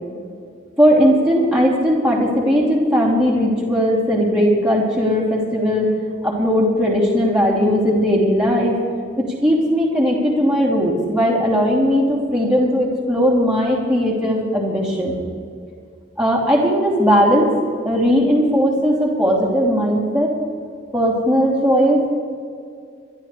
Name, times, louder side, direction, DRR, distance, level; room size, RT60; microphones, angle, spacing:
voice 1, 0.8-5.9 6.2-8.8 9.2-15.2 16.2-17.5 17.8-20.3 20.9-22.1, equal, 5° right, -6 dB, 3.1 m, -18 dB
23.5 x 13.0 x 3.4 m, 2.3 s
head